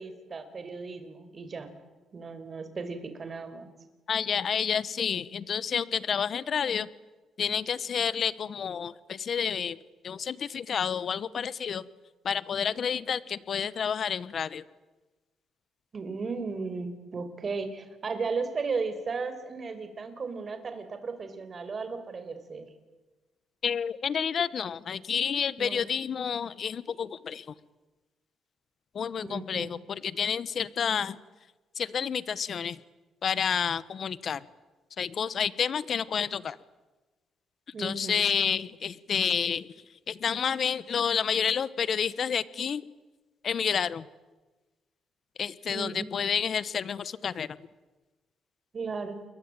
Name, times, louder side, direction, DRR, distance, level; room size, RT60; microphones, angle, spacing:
voice 1, 0.0-1.7 2.1-3.7 15.9-22.7 25.6-25.8 29.2-29.7 37.7-38.2 45.7-46.1 48.7-49.2, right 4 dB, 40° right, 10 dB, 4.9 m, -35 dB
voice 2, 4.1-6.9 7.4-9.8 10.0-11.8 12.2-14.6 23.6-27.4 28.9-31.2 31.8-32.8 33.2-34.4 35.0-36.6 37.8-39.7 40.1-42.8 43.4-44.0 45.4-47.5, left 7 dB, 55° left, 18 dB, 1.2 m, -29 dB
29.0 x 22.5 x 9.1 m, 1.2 s
cardioid pair, 90°, 0 cm